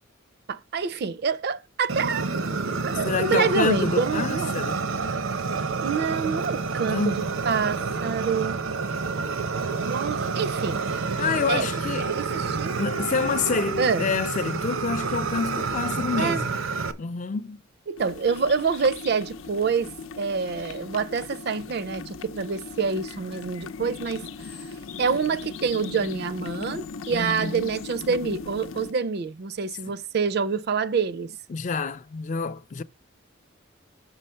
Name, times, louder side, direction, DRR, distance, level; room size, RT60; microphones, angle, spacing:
voice 1, 0.5-2.3 2.8-4.5 5.8-8.6 9.9-11.0 11.5-11.7 12.0-12.8 13.8-14.1 16.2-16.4 17.9-24.6 25.0-31.3, right 5 dB, 55° right, 0.4 m, -27 dB
Fire, 1.9-16.9, right 4 dB, 90° right, 0.8 m, -29 dB
voice 2, 3.0-4.9 6.9-7.3 11.2-12.2 12.8-16.6 17.0-17.6 27.1-27.6 31.5-32.8, left 5 dB, 40° left, 0.4 m, -28 dB
sound 1, 18.0-28.9, left 4 dB, 90° left, 0.6 m, -38 dB
6.3 x 4.1 x 5.5 m
head